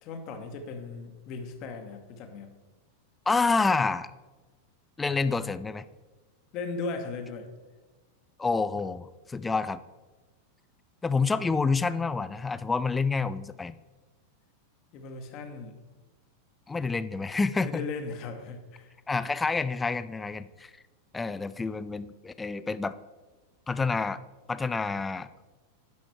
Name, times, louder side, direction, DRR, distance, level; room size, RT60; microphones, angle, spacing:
voice 1, 0.0-2.6 6.5-7.5 14.9-15.7 17.6-19.0, left 4 dB, 40° left, 6 dB, 1.1 m, -37 dB
voice 2, 3.3-4.1 5.0-5.8 8.4-9.8 11.0-13.8 16.7-17.8 19.1-20.7 21.1-23.0 23.7-24.2 24.5-25.3, left 4 dB, 10° left, 15 dB, 0.3 m, -28 dB
9.5 x 6.2 x 3.3 m, 1.2 s
figure-of-eight pair, 90°, 0 cm